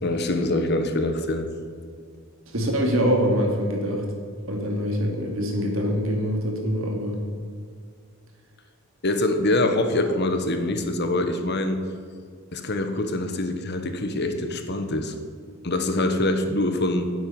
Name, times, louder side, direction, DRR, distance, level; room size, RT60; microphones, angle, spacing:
voice 1, 0.0-1.5 9.0-11.9 12.5-15.1 15.6-17.1, left 2 dB, 50° left, 7 dB, 1.3 m, -24 dB
voice 2, 2.5-4.0 4.5-7.2, equal, 70° right, 1 dB, 2.7 m, -24 dB
11.5 x 7.9 x 9.5 m, 2.1 s
head